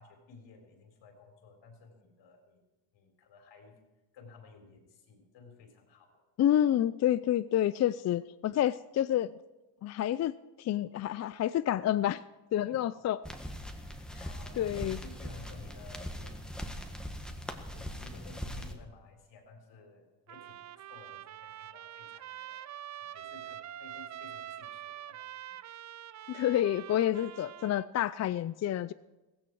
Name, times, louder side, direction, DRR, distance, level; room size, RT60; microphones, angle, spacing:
voice 1, 0.0-2.6 2.9-3.8 4.1-6.2 12.6-12.9 13.7-16.4 16.7-17.1 17.7-22.7 23.1-25.2, left 3 dB, 80° left, 4 dB, 4.0 m, -54 dB
voice 2, 6.4-9.3 9.8-10.3 10.6-12.2 12.5-13.2 14.6-15.0 26.3-28.9, left 11 dB, 40° left, 15 dB, 0.4 m, -28 dB
sound 1, 13.2-18.7, equal, ahead, 1.5 m, -41 dB
Trumpet, 20.3-27.9, right 11 dB, 40° right, 0.5 m, -45 dB
16.5 x 16.0 x 4.7 m, 1.1 s
cardioid pair, 115°, 43 cm